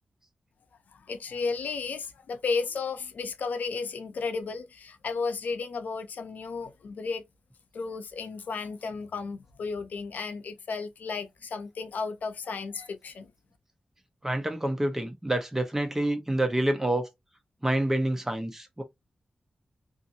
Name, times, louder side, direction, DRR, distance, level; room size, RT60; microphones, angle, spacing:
voice 1, 0.9-7.2 7.7-13.3, left 4 dB, 80° left, 0.5 m, -33 dB
voice 2, 14.2-17.1 17.6-18.8, right 1 dB, 15° right, 0.7 m, -27 dB
2.6 x 2.6 x 2.6 m
cardioid pair, 75°, 3 cm